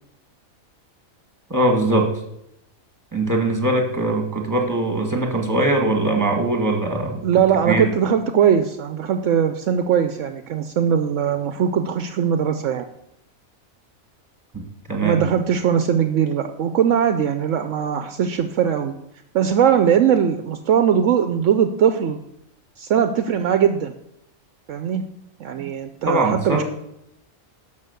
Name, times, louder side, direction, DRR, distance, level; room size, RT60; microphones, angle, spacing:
voice 1, 1.5-2.1 3.1-7.2 7.7-7.9 14.5-15.2 25.6-25.7 26.1-26.6, right 2 dB, 15° right, 3 dB, 1.8 m, -21 dB
voice 2, 7.2-12.9 15.0-18.9 19.3-22.2 22.8-23.9 24.7-25.0 25.4-26.6, right 8 dB, 70° right, 9 dB, 0.9 m, -20 dB
12.0 x 5.7 x 6.8 m, 0.79 s
omnidirectional pair, 1.4 m